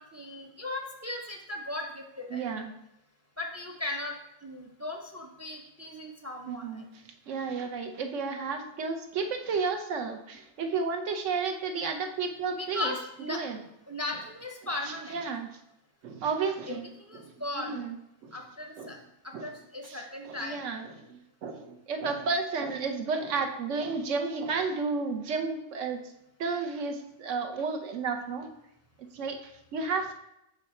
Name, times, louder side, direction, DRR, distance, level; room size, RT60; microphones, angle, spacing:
voice 1, 0.0-2.6 3.4-4.1 4.4-6.8 12.6-13.4 13.9-15.2 16.7-16.8 17.1-17.8 18.3-19.0 19.2-20.6, left 2 dB, 20° right, 2 dB, 0.4 m, -37 dB
voice 2, 2.3-2.8 6.5-6.9 7.3-12.9 13.3-13.6 14.8-15.6 16.0-18.0 18.2-18.4 18.8-19.0 19.3-19.5 19.8-26.0 26.4-28.5 29.1-30.1, right 4 dB, 75° right, 6 dB, 1.1 m, -32 dB
6.5 x 4.8 x 4.3 m, 0.83 s
omnidirectional pair, 1.3 m